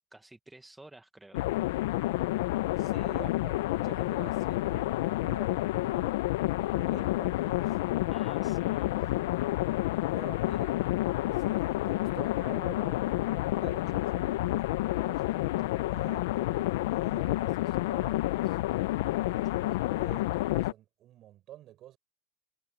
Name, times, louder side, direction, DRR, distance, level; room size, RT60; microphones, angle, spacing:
voice 1, 0.1-1.5 8.1-9.1, right 2 dB, 5° right, 1.0 m, -52 dB
sound 1, 1.3-20.7, left 18 dB, 80° left, 0.4 m, -29 dB
voice 2, 2.8-6.2 6.6-7.8 8.9-9.4 10.1-10.8 11.2-18.6 18.9-22.0, right 13 dB, 40° right, 4.6 m, -50 dB
supercardioid pair, 145°, 0 cm